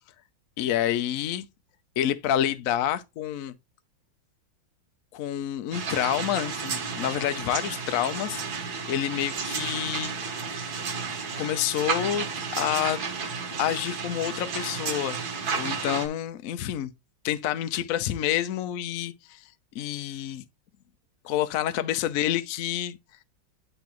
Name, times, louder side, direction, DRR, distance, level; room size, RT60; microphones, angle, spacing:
voice 1, 0.6-1.5 2.0-3.5 5.1-8.4 8.9-10.1 11.3-12.3 12.5-13.0 13.6-15.2 15.5-16.9 17.2-19.5 19.7-20.4 21.2-23.0, left 11 dB, 85° left, 0.7 m, -28 dB
sound 1, 5.7-16.1, right 5 dB, 55° right, 1.6 m, -32 dB
10.5 x 3.9 x 3.0 m
omnidirectional pair, 2.3 m